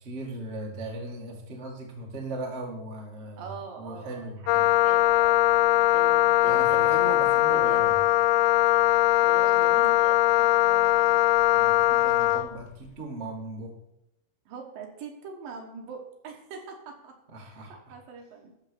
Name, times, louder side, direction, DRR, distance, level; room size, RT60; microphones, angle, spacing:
voice 1, 0.0-3.5 3.8-4.6 6.4-7.9 11.5-13.7 17.3-17.9, right 2 dB, 35° right, -1 dB, 1.0 m, -38 dB
voice 2, 3.4-7.2 7.5-8.1 9.2-11.2 14.5-17.1 17.4-18.5, right 5 dB, 65° right, 2 dB, 2.8 m, -42 dB
Wind instrument woodwind instrument, 4.5-12.5, left 15 dB, 90° left, 2.0 m, -21 dB
13.0 x 4.5 x 6.8 m, 0.83 s
omnidirectional pair, 4.6 m